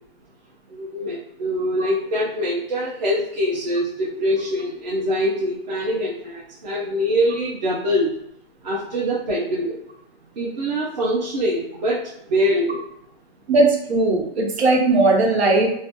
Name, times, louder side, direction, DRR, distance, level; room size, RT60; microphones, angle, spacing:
voice 1, 0.7-8.1 8.6-9.8 10.4-12.8, equal, 45° right, -6 dB, 0.5 m, -24 dB
voice 2, 13.5-15.7, right 2 dB, 80° right, 1 dB, 0.9 m, -18 dB
2.4 x 2.2 x 2.7 m, 0.74 s
hypercardioid pair, 180°, 31 cm